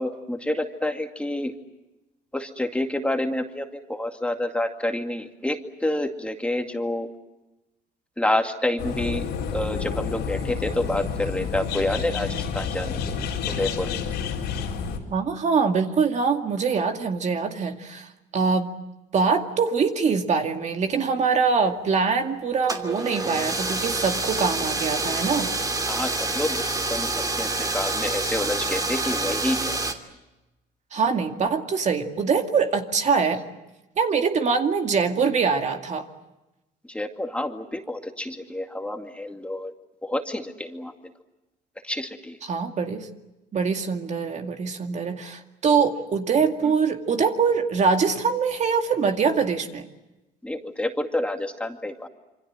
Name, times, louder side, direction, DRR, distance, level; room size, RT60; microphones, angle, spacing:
voice 1, 0.0-1.5 2.3-7.1 8.2-9.2 9.5-13.9 25.9-26.6 26.9-29.8 36.9-39.7 40.0-40.9 41.8-42.4 50.4-52.1, left 1 dB, 5° left, 4 dB, 2.2 m, -28 dB
sound 1, 8.8-15.0, left 6 dB, 90° left, 4.5 m, -29 dB
voice 2, 15.1-18.1 18.3-18.8 19.1-25.5 30.9-33.4 34.0-36.1 42.4-43.1 43.5-49.9, right 5 dB, 45° right, 5 dB, 2.3 m, -23 dB
sound 2, 22.6-29.9, right 2 dB, 20° right, 2.9 m, -27 dB
27.5 x 25.0 x 7.7 m, 1.0 s
cardioid pair, 110°, 17 cm